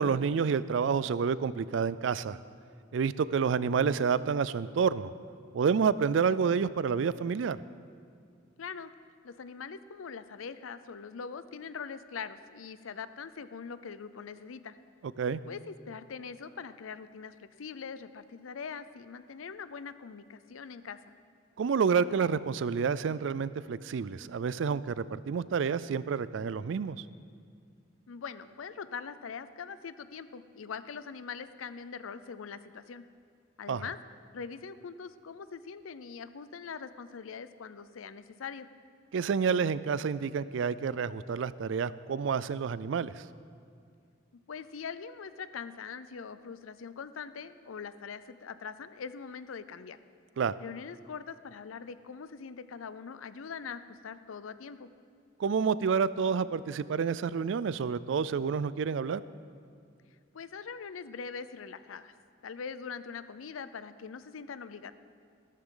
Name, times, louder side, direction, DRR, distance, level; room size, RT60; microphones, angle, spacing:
voice 1, 0.0-2.4 2.9-5.1 5.5-7.6 15.2-15.4 21.6-27.0 33.7-33.8 39.1-43.1 50.4-50.5 55.4-59.2, right 6 dB, 65° right, 17 dB, 0.4 m, -29 dB
voice 2, 8.6-8.9 9.2-14.8 15.5-21.1 28.1-33.0 33.6-34.0 34.3-38.7 44.5-50.0 50.6-54.9 60.3-62.1 62.4-64.9, left 6 dB, 90° left, 13 dB, 0.5 m, -42 dB
14.5 x 13.0 x 3.8 m, 2.2 s
head